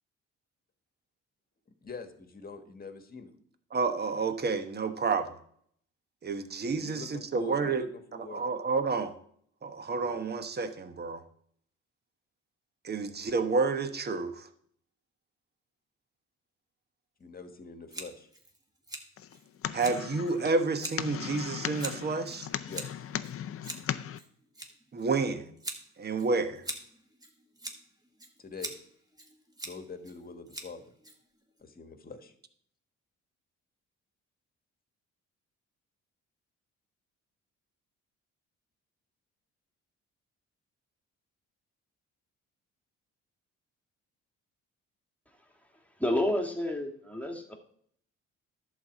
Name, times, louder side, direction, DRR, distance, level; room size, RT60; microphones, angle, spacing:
voice 1, 1.8-3.3 6.7-8.5 10.0-10.2 17.2-18.3 22.7-23.0 28.4-28.7 29.6-30.9 31.6-32.3, left 4 dB, 30° left, 8 dB, 1.4 m, -44 dB
voice 2, 3.7-5.3 6.2-7.8 8.3-9.1 9.6-11.2 12.8-14.5 19.7-22.5 24.9-25.5 26.0-26.6, right 4 dB, 35° right, 8 dB, 1.1 m, -30 dB
Scissors, 17.9-31.6, right 1 dB, 10° right, 1.6 m, -45 dB
sound 1, 19.2-24.2, left 9 dB, 50° left, 0.6 m, -38 dB
voice 3, 46.0-47.5, left 1 dB, 5° left, 3 dB, 1.7 m, -30 dB
11.0 x 4.2 x 7.4 m, 0.65 s
cardioid pair, 90°, 30 cm